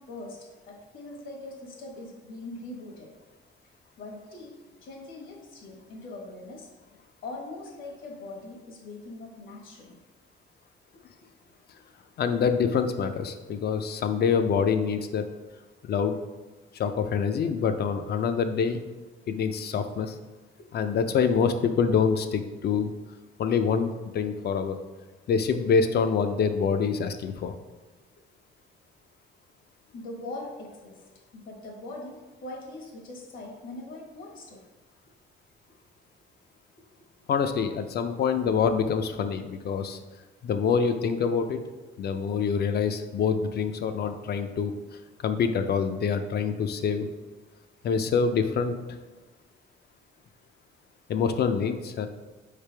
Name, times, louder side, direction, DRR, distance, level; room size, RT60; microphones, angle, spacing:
voice 1, 0.0-3.1 4.0-6.7 7.2-10.0 29.9-31.0 31.3-34.6, left 2 dB, 75° left, -1 dB, 1.3 m, -41 dB
voice 2, 12.2-15.3 15.9-16.2 16.7-18.8 19.3-20.2 20.7-22.9 23.4-24.8 25.3-27.5 37.3-40.0 40.4-41.6 42.0-44.7 45.2-47.0 47.8-48.7 51.1-52.1, left 6 dB, 55° left, 8 dB, 0.4 m, -26 dB
4.8 x 3.3 x 3.3 m, 1.2 s
cardioid pair, 90°, 20 cm